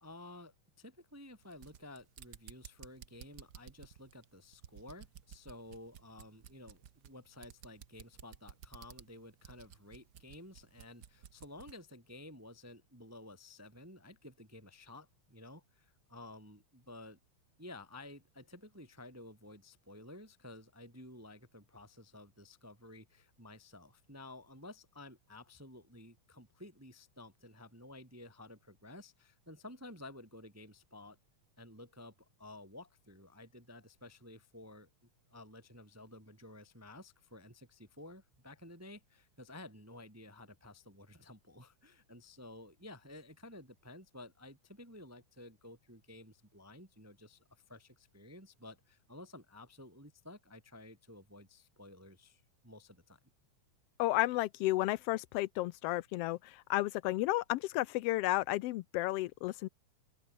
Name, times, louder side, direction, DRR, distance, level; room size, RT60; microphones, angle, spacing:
voice 1, 0.0-17.2 17.6-31.2 31.6-34.9 35.3-53.2, left 1 dB, 10° right, 1.1 m, -53 dB
sound 1, 1.4-11.8, right 9 dB, 55° right, 1.1 m, -55 dB
voice 2, 54.0-59.7, left 17 dB, 90° left, 1.3 m, -32 dB
open air
omnidirectional pair, 3.3 m